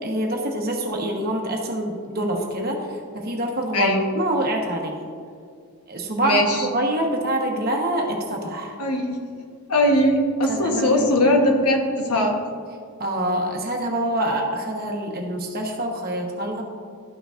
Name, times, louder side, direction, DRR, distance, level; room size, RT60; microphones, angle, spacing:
voice 1, 0.0-2.9 3.1-4.9 5.9-8.8 10.5-11.1 13.0-16.6, right 1 dB, 45° right, 1 dB, 1.1 m, -25 dB
voice 2, 3.7-4.0 6.2-6.7 8.8-9.2 9.7-12.4, left 1 dB, 90° left, 2 dB, 1.1 m, -20 dB
12.5 x 5.9 x 2.5 m, 2.1 s
head